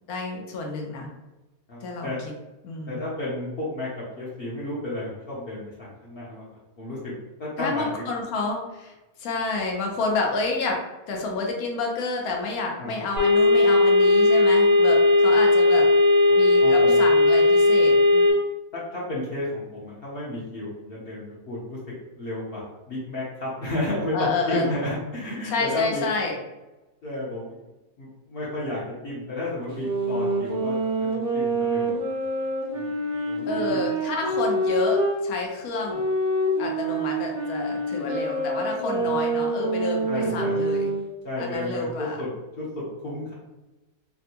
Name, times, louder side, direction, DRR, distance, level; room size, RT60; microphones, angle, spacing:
voice 1, 0.1-1.1 1.8-2.3 2.6-3.0 7.6-8.9 9.2-10.8 11.1-15.9 16.4-18.3 24.1-24.7 25.4-26.4 33.5-36.0 36.6-41.0 41.4-42.2, left 3 dB, 80° left, 1 dB, 1.1 m, -29 dB
voice 2, 1.7-2.2 2.9-3.9 4.2-6.4 6.8-8.0 12.8-13.0 16.6-16.9 18.7-21.8 22.2-26.0 27.0-27.5 28.0-31.1 31.3-32.0 32.7-32.8 33.2-33.8 39.0-39.1 40.1-40.5 41.2-42.3 42.6-43.3, left 1 dB, 50° left, -6 dB, 0.8 m, -32 dB
sound 1, 13.2-18.3, left 2 dB, 90° right, 1.3 m, -17 dB
sound 2, 29.7-35.2 35.8-41.0, right 1 dB, 50° right, 0.8 m, -26 dB
3.4 x 2.1 x 2.7 m, 1.1 s
omnidirectional pair, 1.5 m